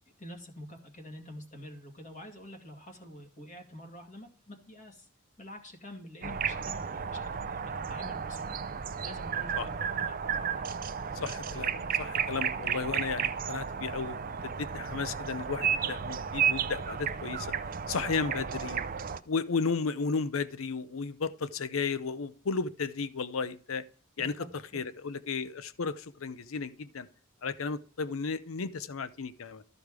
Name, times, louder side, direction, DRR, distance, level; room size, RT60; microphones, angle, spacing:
voice 1, 0.2-5.1 5.4-8.6 9.0-10.2 24.2-24.8, left 1 dB, 35° left, 2.3 m, -47 dB
sound 1, 6.2-19.2, right 7 dB, 45° right, 0.5 m, -33 dB
voice 2, 11.1-17.5 17.9-18.8 19.3-23.8 24.2-27.1 27.4-29.6, left 5 dB, 80° left, 0.6 m, -34 dB
13.5 x 5.1 x 4.8 m
head